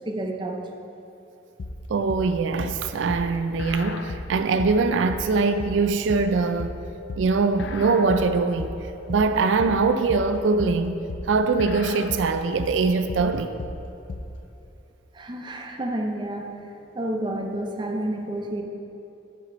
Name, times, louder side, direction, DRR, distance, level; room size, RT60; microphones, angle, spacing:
voice 1, 0.1-0.7 15.1-16.5 16.9-18.6, right 1 dB, 25° right, 0.6 m, -29 dB
sound 1, 1.6-14.4, left 2 dB, 70° left, 0.5 m, -35 dB
voice 2, 1.9-6.8 7.2-8.8 9.1-11.0 11.3-13.6, right 4 dB, 85° right, 0.4 m, -22 dB
9.0 x 6.4 x 3.9 m
head